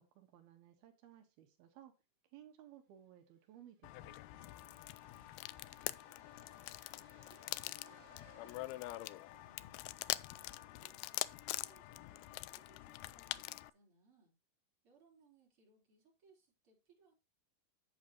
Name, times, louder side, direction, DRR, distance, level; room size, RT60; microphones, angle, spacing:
voice 1, 0.0-1.9 2.3-4.2, right 11 dB, 90° right, 6 dB, 3.3 m, -59 dB
sound 1, 3.0-10.1, right 7 dB, 65° right, 3.2 m, -70 dB
sound 2, 3.8-13.7, left 18 dB, 90° left, 2.5 m, -44 dB
sound 3, 4.3-13.8, left 3 dB, 70° left, 5.6 m, -72 dB
voice 2, 4.9-6.3 6.8-11.1 11.5-14.3 14.8-17.1, right 4 dB, 35° right, 0 dB, 4.7 m, -70 dB
10.0 x 8.8 x 2.9 m, 0.28 s
omnidirectional pair, 4.3 m